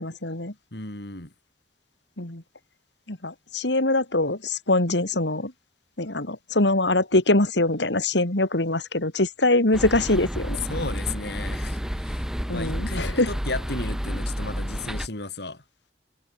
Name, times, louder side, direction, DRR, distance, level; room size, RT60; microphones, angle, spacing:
voice 1, 0.0-0.5 2.2-2.4 3.1-5.5 6.0-10.6 12.5-13.3, left 2 dB, 85° left, 3.2 m, -23 dB
voice 2, 0.7-1.3 10.7-15.6, left 3 dB, 70° left, 4.7 m, -34 dB
sound 1, 9.7-15.1, equal, 5° right, 0.7 m, -30 dB
head